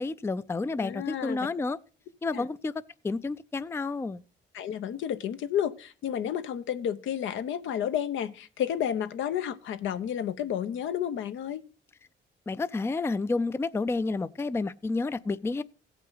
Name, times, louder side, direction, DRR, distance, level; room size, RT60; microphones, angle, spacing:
voice 1, 0.0-1.8 2.2-2.7 3.0-4.2 12.5-15.6, left 3 dB, 10° left, 0.4 m, -30 dB
voice 2, 0.8-1.4 2.3-2.5 4.5-11.6, left 9 dB, 75° left, 0.8 m, -31 dB
16.0 x 5.6 x 3.9 m
cardioid pair, 90°, 20 cm